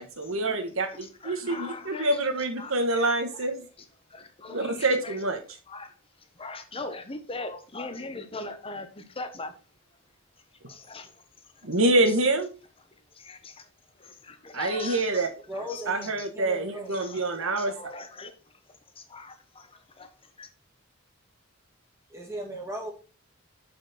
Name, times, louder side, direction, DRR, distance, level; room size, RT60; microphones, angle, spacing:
voice 1, 0.0-3.7 4.5-5.4 11.6-12.5 14.5-15.3 15.9-17.7, right 2 dB, 75° right, 1.5 m, -26 dB
voice 2, 0.9-2.2 2.6-3.2 4.1-5.2 5.7-5.9 6.4-9.5 10.7-11.1 13.1-13.6 14.0-15.3 15.7-15.8 16.2-16.3 16.9-18.3 19.0-20.1 20.4-20.5, left 3 dB, 25° left, 1.1 m, -40 dB
voice 3, 15.5-17.0 22.1-22.9, equal, 15° right, 1.9 m, -37 dB
6.7 x 6.0 x 4.3 m
head